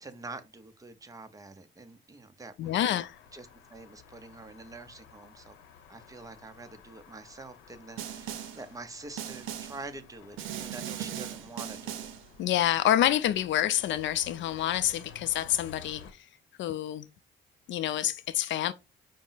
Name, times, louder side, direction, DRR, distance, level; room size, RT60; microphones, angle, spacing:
voice 1, 0.0-3.0 3.3-5.5 5.9-12.1, right 3 dB, 15° right, 0.7 m, -46 dB
sound 1, 2.6-16.1, left 7 dB, 85° left, 0.9 m, -53 dB
voice 2, 2.6-3.2 12.4-16.3 16.6-17.1 17.7-18.7, left 12 dB, 70° left, 0.4 m, -27 dB
Snare drum, 8.0-8.7 9.2-9.9 10.4-12.3, right 10 dB, 85° right, 0.6 m, -38 dB
5.1 x 2.1 x 3.8 m
cardioid pair, 90°, 20 cm